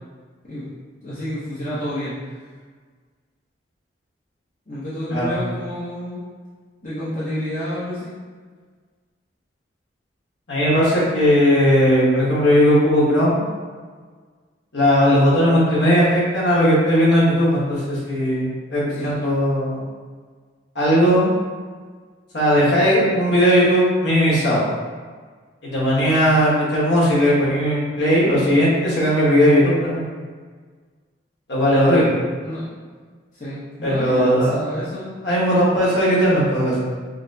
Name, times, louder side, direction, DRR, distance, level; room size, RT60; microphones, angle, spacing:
voice 1, 1.0-2.2 4.7-6.2 6.8-8.1 19.0-19.2 31.6-32.1 32.4-32.7 33.4-35.2, left 1 dB, 40° left, -12 dB, 0.9 m, -29 dB
voice 2, 10.5-13.4 14.7-19.8 20.7-21.3 22.3-24.7 25.6-30.0 31.5-32.2 33.8-34.6 35.2-36.7, equal, 65° left, -7 dB, 1.4 m, -17 dB
5.7 x 2.1 x 2.8 m, 1.5 s
head